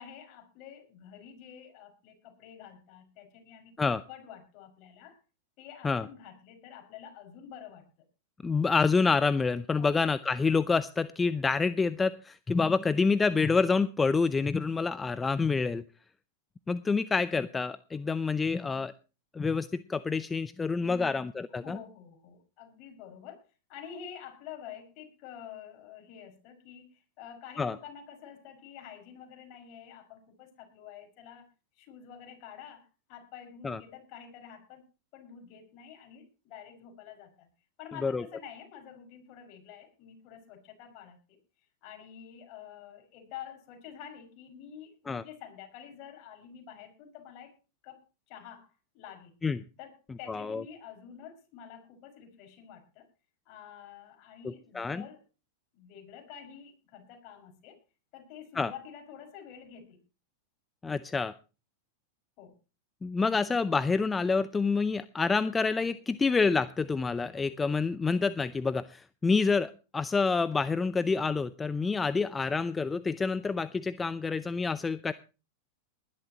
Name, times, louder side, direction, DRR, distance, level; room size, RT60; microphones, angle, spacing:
voice 1, 0.0-5.2 5.6-7.9 9.8-10.0 20.8-21.1 21.6-23.4 23.7-31.5 31.8-34.9 35.1-37.5 37.8-41.4 41.8-47.5 47.8-48.7 48.9-49.3 49.8-53.1 53.5-55.2 55.7-57.8 58.1-60.0 62.4-62.5, left 8 dB, 50° left, 5 dB, 5.6 m, -48 dB
voice 2, 8.4-15.8 16.7-18.9 19.3-21.8 27.6-27.7 33.6-33.8 38.0-38.2 45.1-45.2 49.4-49.6 50.3-50.6 54.4-55.0 58.5-58.7 60.8-61.3 63.0-75.1, left 4 dB, 15° left, 15 dB, 0.6 m, -27 dB
20.5 x 12.0 x 2.9 m, 0.32 s
hypercardioid pair, 110°, 0 cm